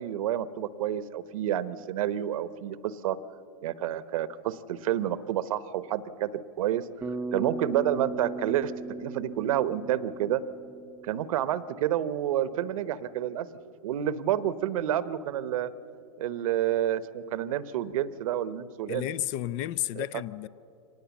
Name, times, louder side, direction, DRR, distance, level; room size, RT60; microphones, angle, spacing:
voice 1, 0.0-3.2 3.6-6.3 6.6-6.8 7.3-8.7 9.0-10.4 11.0-13.5 13.8-15.7 16.2-19.1 20.0-20.1, right 11 dB, 70° right, 0.9 m, -29 dB
Bass guitar, 7.0-11.4, right 3 dB, 10° right, 0.6 m, -37 dB
voice 2, 18.9-20.5, left 13 dB, 40° left, 0.5 m, -32 dB
24.5 x 18.5 x 7.2 m
hypercardioid pair, 130°, 18 cm